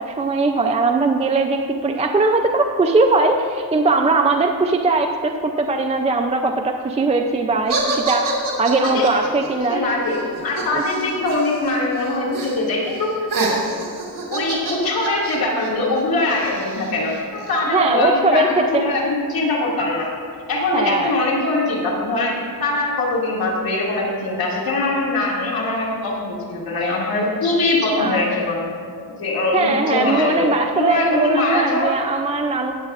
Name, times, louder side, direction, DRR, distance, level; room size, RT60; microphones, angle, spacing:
voice 1, 0.0-9.8 10.7-10.8 17.7-18.8 20.7-21.1 27.9-28.2 29.5-32.7, right 3 dB, 20° right, 4 dB, 0.4 m, -20 dB
sound 1, 7.7-11.7 12.0-12.6 12.9-17.5, right 3 dB, 60° right, 2.2 m, -27 dB
voice 2, 8.8-9.2 9.7-13.7 14.3-20.1 20.5-28.7 29.2-32.0, left 2 dB, 75° left, -4 dB, 2.2 m, -22 dB
18.5 x 7.4 x 2.4 m, 2.2 s
wide cardioid pair, 140°, 36 cm